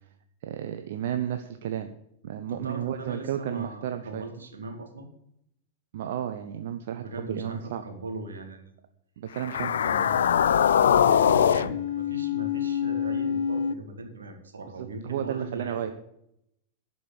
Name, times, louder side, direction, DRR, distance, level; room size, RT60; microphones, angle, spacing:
voice 1, 0.4-1.9 2.2-4.3 5.9-7.8 9.2-9.7 14.8-15.9, right 10 dB, 60° right, 8 dB, 0.7 m, -32 dB
voice 2, 2.5-5.1 7.0-8.6 9.4-10.2 10.9-15.9, right 2 dB, 80° right, 4 dB, 2.2 m, -39 dB
sound 1, 9.4-13.7, left 8 dB, 70° left, 0.4 m, -23 dB
11.5 x 5.4 x 8.6 m, 0.77 s
figure-of-eight pair, 95°, 0 cm